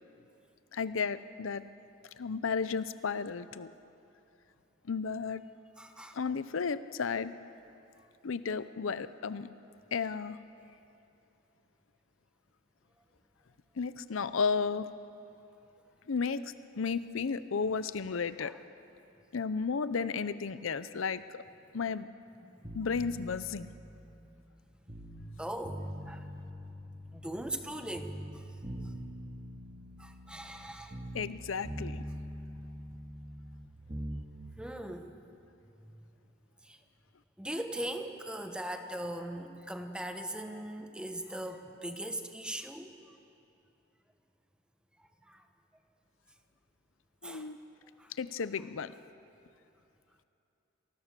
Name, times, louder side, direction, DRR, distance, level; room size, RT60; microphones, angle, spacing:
voice 1, 0.7-1.6 2.2-3.7 4.9-5.4 6.1-7.3 8.2-9.5 9.9-10.4 13.8-14.9 16.1-18.5 19.3-21.4 21.7-22.1 22.7-23.7 31.1-32.0 47.2-47.6 48.2-48.9, left 5 dB, 75° left, 14 dB, 0.6 m, -33 dB
voice 2, 5.8-6.2 18.4-18.6 22.4-22.7 25.4-26.5 27.1-28.4 28.8-28.9 30.0-31.0 34.6-35.1 35.8-36.0 36.6-36.8 37.4-42.9 45.3-45.4 47.2-47.5 48.0-48.1, right 1 dB, 5° right, 6 dB, 1.2 m, -40 dB
sound 1, 22.6-25.3 25.6-27.7 27.9-31.4 31.6-34.3, equal, 30° right, 2.1 m, -43 dB
27.0 x 19.5 x 6.8 m, 2.8 s
head